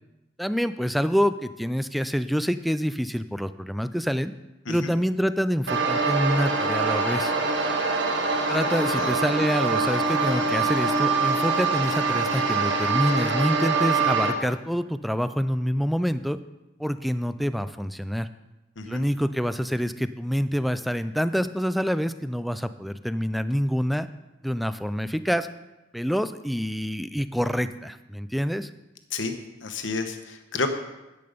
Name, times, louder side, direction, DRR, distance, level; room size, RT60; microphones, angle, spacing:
voice 1, 0.4-4.3 4.7-7.3 8.5-16.4 16.8-18.3 18.9-24.1 24.4-25.5 25.9-28.7, equal, ahead, 12 dB, 0.3 m, -26 dB
sound 1, 5.7-14.3, right 4 dB, 65° right, 1.5 m, -24 dB
voice 2, 29.6-30.7, left 4 dB, 85° left, 7 dB, 1.1 m, -30 dB
10.5 x 8.7 x 5.1 m, 1.0 s
head